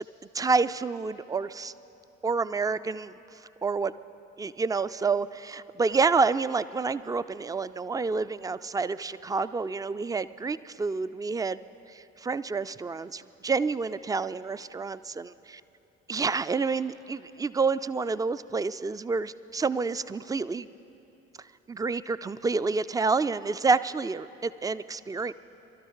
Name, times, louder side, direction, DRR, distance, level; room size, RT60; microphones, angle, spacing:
voice 1, 0.3-1.7 2.2-3.1 3.6-3.9 4.4-11.6 11.9-15.3 16.1-20.7 21.7-25.3, right 4 dB, 10° right, 14 dB, 0.3 m, -28 dB
22.5 x 12.5 x 4.7 m, 3.0 s
hypercardioid pair, 50°, 35 cm